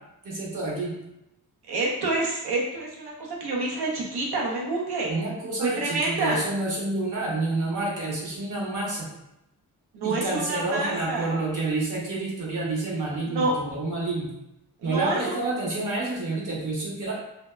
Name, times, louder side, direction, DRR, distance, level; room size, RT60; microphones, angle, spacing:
voice 1, 0.2-0.9 5.1-9.1 10.0-14.3 14.8-17.1, right 2 dB, 55° right, -4 dB, 1.0 m, -29 dB
voice 2, 1.7-5.1 5.6-6.4 9.9-11.3 13.2-13.5 14.8-15.3, right 2 dB, 85° right, -2 dB, 0.8 m, -28 dB
2.7 x 2.2 x 2.2 m, 0.86 s
cardioid pair, 75°, 38 cm